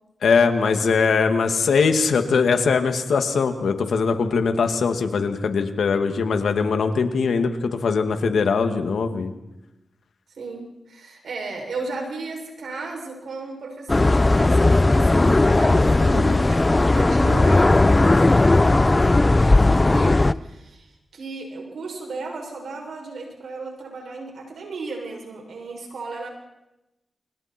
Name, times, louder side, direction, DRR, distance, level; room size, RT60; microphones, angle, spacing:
voice 1, 0.2-9.3, left 5 dB, 85° left, 6 dB, 2.3 m, -21 dB
voice 2, 10.3-26.3, right 3 dB, 85° right, 1 dB, 7.0 m, -35 dB
sound 1, 13.9-20.3, left 2 dB, 30° left, 0.8 m, -17 dB
28.5 x 26.5 x 4.6 m, 0.95 s
cardioid pair, 50°, 0 cm